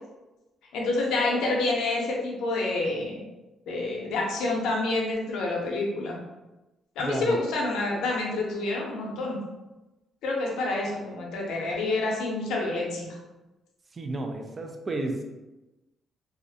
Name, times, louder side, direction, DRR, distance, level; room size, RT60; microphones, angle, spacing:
voice 1, 0.7-3.2 3.7-6.2 7.0-9.4 10.2-13.2, left 2 dB, 85° left, -1 dB, 0.6 m, -28 dB
voice 2, 7.0-7.4 13.9-15.2, right 2 dB, 35° right, 4 dB, 0.4 m, -32 dB
2.4 x 2.0 x 2.7 m, 1.1 s
cardioid pair, 90°, 0 cm